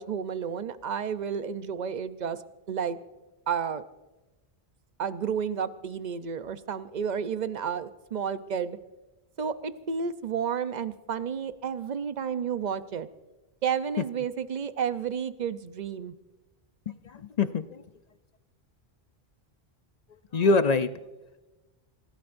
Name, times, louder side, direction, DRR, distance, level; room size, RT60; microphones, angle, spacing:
voice 1, 0.0-2.4 2.7-3.0 3.5-3.8 5.0-8.8 9.4-13.1 13.6-16.1, right 7 dB, 50° right, 11 dB, 0.8 m, -31 dB
voice 2, 16.9-17.8 20.3-21.1, left 3 dB, 50° left, 11 dB, 0.6 m, -25 dB
28.5 x 16.5 x 2.6 m, 1.1 s
omnidirectional pair, 1.1 m